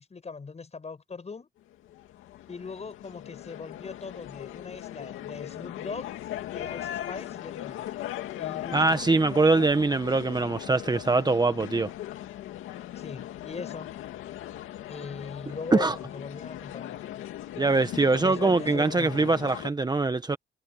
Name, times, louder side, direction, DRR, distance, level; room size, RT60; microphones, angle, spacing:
voice 1, 0.0-1.5 2.5-6.2 6.5-7.9 8.4-9.2 13.0-13.9 14.9-17.2 18.2-19.6, left 4 dB, 35° left, 7.2 m, -40 dB
sound 1, 1.7-19.7, left 13 dB, 85° left, 2.4 m, -39 dB
voice 2, 8.7-11.9 15.7-16.0 17.6-20.4, right 3 dB, 20° right, 1.3 m, -23 dB
cardioid pair, 90°, 20 cm